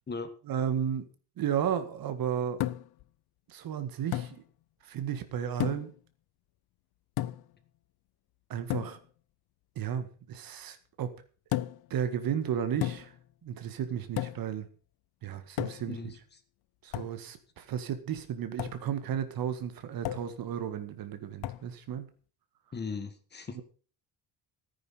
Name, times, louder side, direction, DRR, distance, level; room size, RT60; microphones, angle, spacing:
voice 1, 0.5-1.1 1.4-2.6 3.5-4.4 4.8-5.9 8.5-9.0 9.8-11.1 11.9-13.1 13.4-14.7 15.2-16.1 16.8-22.1 23.5-23.6, right 9 dB, 50° right, 10 dB, 1.9 m, -33 dB
sound 1, 2.6-3.0 4.1-4.4 5.6-6.0 7.2-7.5 8.7-9.0 11.5-11.9 12.8-13.2 14.2-14.5 15.6-16.0 16.9-17.2 18.6-18.8 20.0-20.4 21.4-21.7, left 14 dB, 55° left, 0.7 m, -33 dB
voice 2, 22.7-23.6, left 4 dB, 25° left, 9 dB, 1.5 m, -37 dB
14.0 x 9.8 x 5.8 m, 0.39 s
cardioid pair, 160°, 44 cm